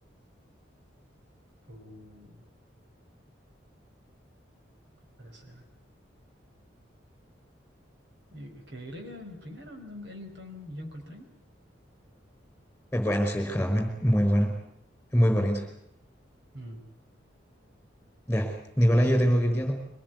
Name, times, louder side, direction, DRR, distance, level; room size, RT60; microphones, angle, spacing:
voice 1, 1.7-2.4 5.2-5.6 8.3-11.3 16.5-16.8, left 1 dB, 65° right, 3 dB, 5.4 m, -43 dB
voice 2, 12.9-14.5 15.1-15.6 18.3-19.7, equal, 5° left, 5 dB, 5.3 m, -23 dB
24.0 x 19.0 x 9.6 m, 0.75 s
head